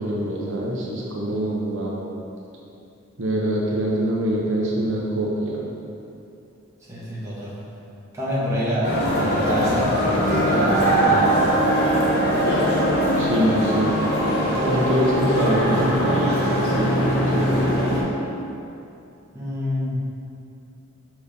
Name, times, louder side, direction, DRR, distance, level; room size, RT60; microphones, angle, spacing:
voice 1, 0.0-2.0 3.2-5.6 13.2-14.0 14.6-18.1, right 1 dB, 65° right, -3 dB, 0.8 m, -24 dB
voice 2, 6.9-7.5 8.1-11.5 19.3-20.0, equal, 15° right, -9 dB, 1.7 m, -27 dB
sound 1, 8.8-18.0, equal, 50° left, 1.5 m, -21 dB
6.7 x 4.7 x 5.2 m, 2.6 s
head